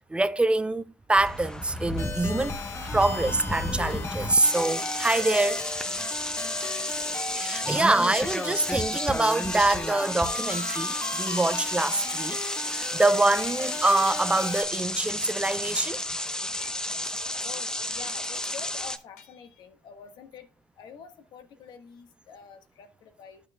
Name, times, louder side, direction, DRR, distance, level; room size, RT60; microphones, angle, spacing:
voice 1, 0.1-0.8 1.1-2.6 2.9-5.7 7.3-12.4 12.7-16.0, right 2 dB, 10° right, 0.5 m, -25 dB
sound 1, 1.2-19.0, left 1 dB, 10° left, 0.9 m, -32 dB
sound 2, 2.0-14.7, left 3 dB, 35° left, 1.5 m, -36 dB
voice 2, 6.4-6.9 17.4-20.5 20.8-23.4, left 7 dB, 60° left, 1.3 m, -46 dB
sound 3, 15.7-16.3 16.6-17.0 17.4-17.9 18.3-18.6 19.2-19.7, left 7 dB, 85° left, 1.1 m, -54 dB
12.0 x 6.5 x 2.2 m
hypercardioid pair, 70°, 8 cm